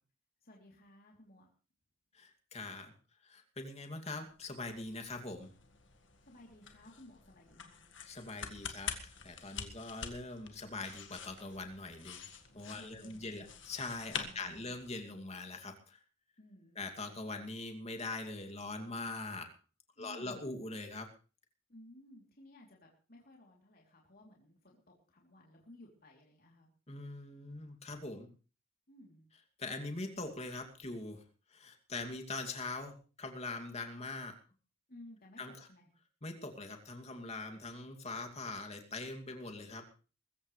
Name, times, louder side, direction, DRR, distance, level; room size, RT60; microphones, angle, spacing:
voice 1, 0.4-1.5 6.2-7.9 12.8-13.6 14.1-14.8 16.4-16.8 20.0-20.5 21.7-26.7 28.9-29.2 34.9-35.9, left 1 dB, 45° left, -2 dB, 3.3 m, -57 dB
voice 2, 2.1-2.9 3.2-5.5 8.0-12.3 12.5-16.0 16.8-19.5 20.0-21.1 26.9-28.3 29.6-31.2 31.5-34.3 35.4-35.7 36.2-39.8, left 3 dB, 30° left, 4 dB, 2.5 m, -42 dB
sound 1, 4.3-15.1, left 7 dB, 65° left, 1.9 m, -47 dB
22.5 x 14.5 x 3.3 m, 0.36 s
head